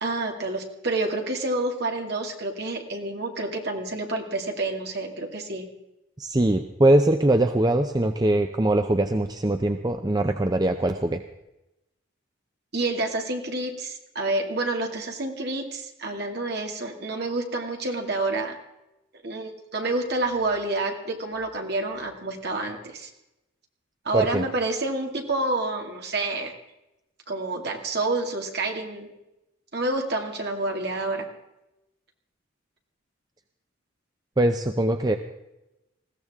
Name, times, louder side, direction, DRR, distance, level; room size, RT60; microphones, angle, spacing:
voice 1, 0.0-5.7 12.7-18.6 19.2-23.1 24.0-26.5 27.3-29.1 29.7-31.3, right 2 dB, 50° right, 2 dB, 2.3 m, -28 dB
voice 2, 6.2-11.2 24.1-24.4 34.4-35.2, right 1 dB, 20° right, 7 dB, 0.5 m, -22 dB
20.5 x 16.0 x 3.6 m, 0.93 s
head